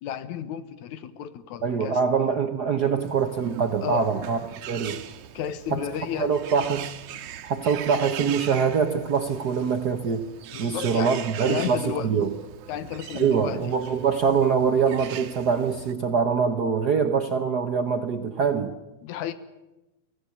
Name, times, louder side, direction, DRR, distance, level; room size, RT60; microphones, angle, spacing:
voice 1, 0.0-2.0 3.8-4.1 5.3-6.3 10.5-11.1 11.5-12.1 12.7-13.8 19.0-19.3, left 9 dB, 85° left, 13 dB, 2.5 m, -32 dB
voice 2, 1.6-4.4 4.7-5.0 5.7-5.9 6.2-6.9 7.4-10.3 10.6-12.3 13.1-18.7, right 6 dB, 65° right, 7 dB, 0.9 m, -24 dB
Bird, 3.0-15.9, right 10 dB, 85° right, 2.4 m, -40 dB
24.0 x 15.5 x 8.4 m, 1.0 s
omnidirectional pair, 3.3 m